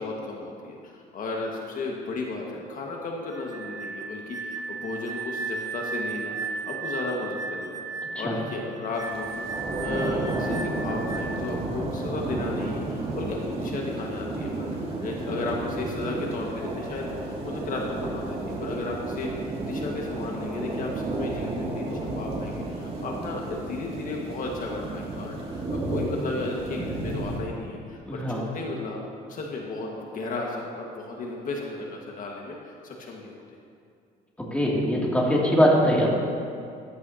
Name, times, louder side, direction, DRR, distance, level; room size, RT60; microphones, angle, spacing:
voice 1, 0.0-9.5 9.8-29.0 29.3-33.4, left 3 dB, 55° left, -1 dB, 1.5 m, -34 dB
sound 1, 3.3-11.5, right 4 dB, 20° right, 0.9 m, -35 dB
sound 2, 9.0-27.4, right 2 dB, 35° right, 2.2 m, -32 dB
voice 2, 28.1-28.4 34.5-36.1, equal, 5° left, -4 dB, 2.4 m, -22 dB
14.5 x 13.5 x 2.8 m, 2.4 s
cardioid pair, 110°, 17 cm